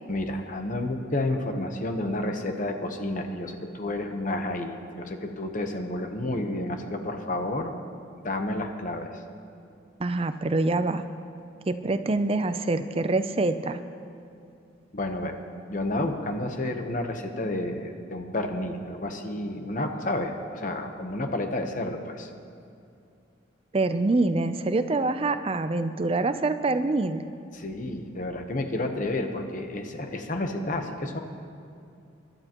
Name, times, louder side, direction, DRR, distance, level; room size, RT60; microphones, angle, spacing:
voice 1, 0.1-7.7 8.2-9.2 14.9-15.3 15.7-22.3 27.5-31.2, left 1 dB, 40° left, 5 dB, 0.9 m, -30 dB
voice 2, 10.0-11.0 11.7-13.8 23.7-27.2, right 2 dB, 30° right, 10 dB, 0.4 m, -25 dB
22.0 x 12.0 x 3.0 m, 2.6 s
head